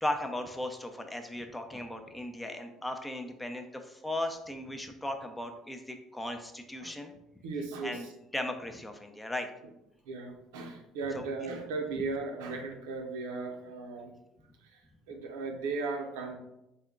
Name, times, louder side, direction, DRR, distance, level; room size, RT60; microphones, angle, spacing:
voice 1, 0.0-7.1 7.8-8.1 8.3-9.5 11.1-11.2, left 1 dB, 10° left, 5 dB, 0.5 m, -37 dB
voice 2, 7.4-8.1 10.0-14.1 14.6-16.3, right 3 dB, 80° right, 2 dB, 0.6 m, -37 dB
3.5 x 2.2 x 3.6 m, 0.85 s
hypercardioid pair, 65°, 0 cm